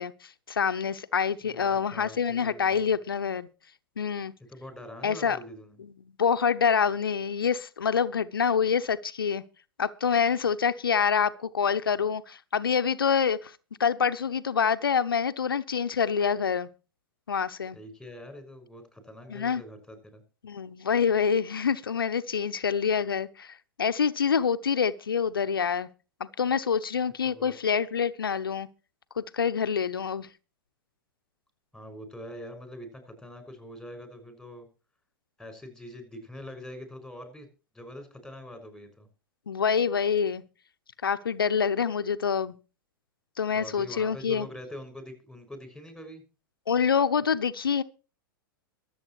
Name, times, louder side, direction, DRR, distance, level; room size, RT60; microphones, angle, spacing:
voice 1, 0.0-3.5 4.0-4.3 5.0-5.4 6.2-9.4 9.8-13.5 13.8-16.7 17.3-17.8 19.3-19.6 20.4-25.9 26.2-28.7 29.2-30.3 39.5-40.4 41.0-42.5 43.4-44.5 46.7-47.8, left 6 dB, 80° left, 0.9 m, -26 dB
voice 2, 1.4-3.0 4.5-5.8 17.7-20.2 27.2-27.5 31.7-34.7 35.4-37.5 37.7-39.1 43.5-46.2, left 1 dB, ahead, 5.8 m, -44 dB
24.0 x 8.1 x 3.1 m
figure-of-eight pair, 95°, 12 cm